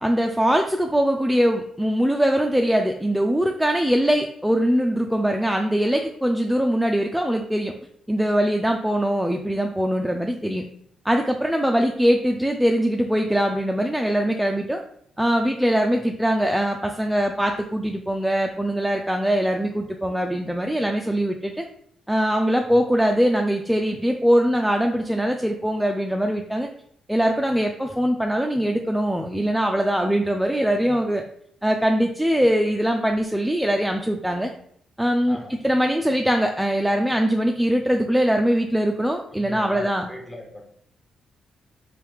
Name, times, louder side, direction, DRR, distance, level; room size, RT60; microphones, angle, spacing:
voice 1, 0.0-7.7 8.1-10.6 11.0-14.8 15.2-21.6 22.1-26.7 27.1-31.2 31.6-34.5 35.0-35.4 35.6-40.1, equal, 5° right, 3 dB, 0.3 m, -22 dB
voice 2, 39.3-40.6, left 1 dB, 20° left, 1 dB, 1.0 m, -39 dB
3.3 x 3.0 x 3.3 m, 0.68 s
cardioid pair, 70°, 0 cm